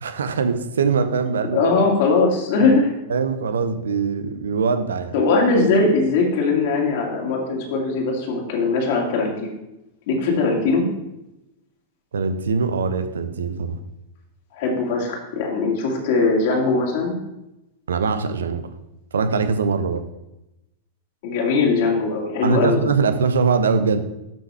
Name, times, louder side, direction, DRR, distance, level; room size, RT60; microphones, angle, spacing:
voice 1, 0.0-1.6 2.6-2.7 3.1-5.1 12.1-13.8 17.9-18.7 19.1-20.0 22.4-24.0, right 5 dB, 70° right, 10 dB, 0.8 m, -22 dB
voice 2, 1.5-2.9 5.1-9.5 10.1-10.8 14.5-17.1 21.2-22.8, left 3 dB, 50° left, 0 dB, 2.3 m, -20 dB
12.0 x 5.8 x 3.4 m, 0.91 s
figure-of-eight pair, 90°, 0 cm